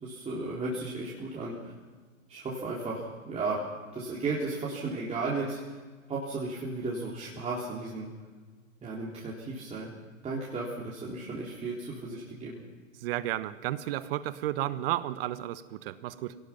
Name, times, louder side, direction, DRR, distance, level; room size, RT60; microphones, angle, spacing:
voice 1, 0.0-1.7 2.3-3.6 3.9-5.8 6.1-8.1 8.8-9.9 10.2-12.6, right 3 dB, 15° right, -6 dB, 3.7 m, -34 dB
voice 2, 13.0-16.4, right 14 dB, 45° right, 15 dB, 1.2 m, -32 dB
26.0 x 18.0 x 6.0 m, 1.4 s
hypercardioid pair, 120°, 41 cm